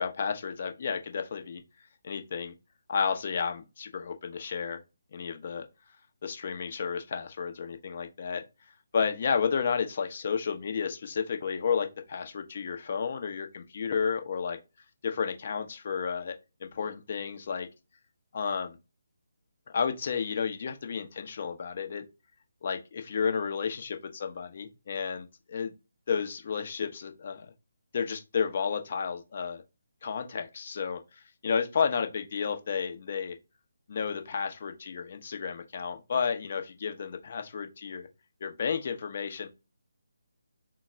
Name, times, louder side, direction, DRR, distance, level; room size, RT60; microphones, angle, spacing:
voice 1, 0.0-1.6 2.0-2.5 2.9-4.8 5.1-5.7 6.2-8.4 8.9-14.6 15.0-16.3 16.6-17.7 18.3-18.8 19.7-22.0 22.6-25.7 26.1-27.5 27.9-29.6 30.0-33.4 33.9-38.1 38.4-39.5, left 6 dB, 40° left, 0.7 m, -32 dB
3.8 x 2.2 x 3.8 m
figure-of-eight pair, 145°, 0 cm